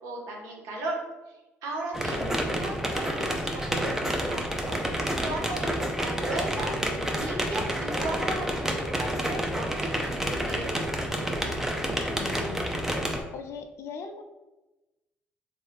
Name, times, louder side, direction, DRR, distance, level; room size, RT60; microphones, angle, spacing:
voice 1, 0.0-10.9, right 2 dB, 85° right, 0 dB, 0.7 m, -36 dB
sound 1, 1.9-13.2, equal, 10° right, 0.5 m, -29 dB
voice 2, 12.2-14.2, left 6 dB, 65° left, 6 dB, 0.4 m, -41 dB
3.3 x 2.5 x 3.3 m, 1.1 s
supercardioid pair, 70°, 5 cm